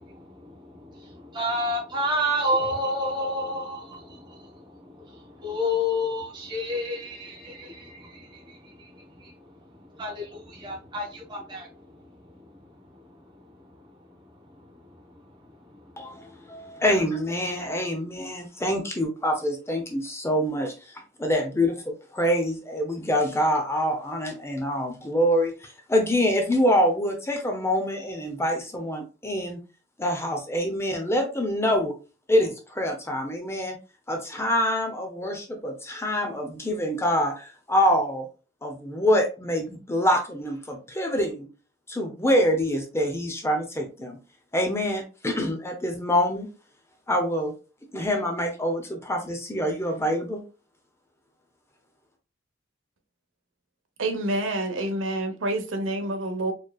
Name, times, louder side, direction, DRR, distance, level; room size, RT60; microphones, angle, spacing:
voice 1, 0.0-4.5 4.8-9.3 10.0-11.7, left 1 dB, 25° right, 1.2 m, -30 dB
voice 2, 16.0-29.6 30.0-31.9 32.3-33.8 34.1-38.3 38.6-41.5 41.9-44.2 44.5-46.5 47.1-47.5 47.9-50.4, equal, 15° left, 0.7 m, -25 dB
voice 3, 54.0-56.5, right 1 dB, 80° right, 0.9 m, -27 dB
4.5 x 3.1 x 2.3 m
head